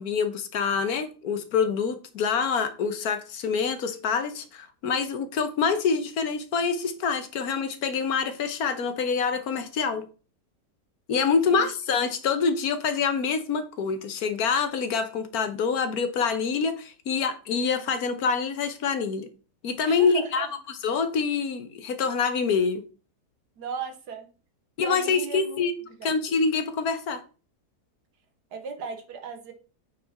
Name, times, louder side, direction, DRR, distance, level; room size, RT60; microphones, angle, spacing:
voice 1, 0.0-10.0 11.1-19.3 19.6-20.5 20.8-22.8 24.8-25.7 26.0-27.2, left 5 dB, 65° left, 1.3 m, -26 dB
voice 2, 11.2-11.7 19.9-20.6 23.6-24.3 24.8-25.6 26.0-26.2 28.5-29.5, right 5 dB, 80° right, 1.7 m, -36 dB
8.6 x 4.2 x 4.2 m
omnidirectional pair, 1.7 m